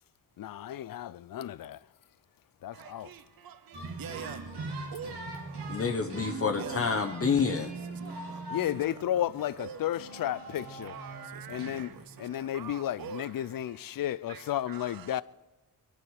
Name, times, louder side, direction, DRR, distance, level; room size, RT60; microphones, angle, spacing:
voice 1, 0.4-1.8 2.6-3.1 8.5-11.0 11.5-15.2, left 12 dB, 60° left, 0.5 m, -33 dB
voice 2, 2.7-5.8 6.2-6.8 7.9-8.6 9.2-9.3 9.6-9.8 10.8-13.3 14.3-15.2, right 7 dB, 65° right, 0.7 m, -45 dB
fairytale dalang, 3.7-12.3, right 2 dB, 85° right, 2.6 m, -41 dB
voice 3, 5.7-7.7, left 5 dB, 35° left, 0.8 m, -28 dB
22.0 x 12.0 x 4.8 m
wide cardioid pair, 115°, 38 cm